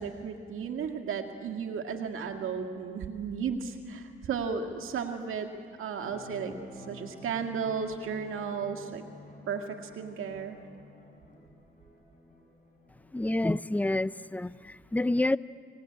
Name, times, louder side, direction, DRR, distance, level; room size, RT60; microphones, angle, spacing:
voice 1, 0.0-5.5 5.8-9.0 9.5-10.6, right 6 dB, 85° right, 5 dB, 2.0 m, -34 dB
sound 1, 6.0-13.4, left 1 dB, 40° left, 6.6 m, -51 dB
voice 2, 13.1-15.4, left 2 dB, 5° left, 17 dB, 0.5 m, -28 dB
25.5 x 19.0 x 8.7 m, 2.4 s
cardioid pair, 80°, 21 cm